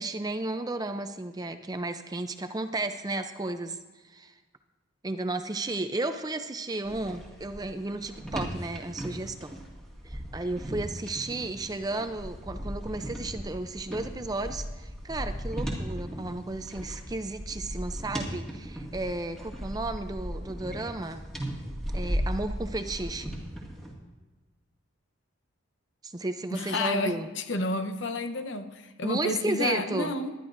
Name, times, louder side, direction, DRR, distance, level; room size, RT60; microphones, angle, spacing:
voice 1, 0.0-3.8 4.0-4.3 5.0-9.5 10.0-21.2 21.9-23.3 26.0-27.3 29.0-30.1, right 2 dB, 20° right, 8 dB, 0.4 m, -33 dB
rowing boat from inside, 6.8-23.9, equal, 5° left, 2.0 m, -37 dB
voice 2, 26.5-30.3, left 2 dB, 60° left, 8 dB, 0.8 m, -31 dB
19.5 x 11.5 x 2.6 m, 1.3 s
head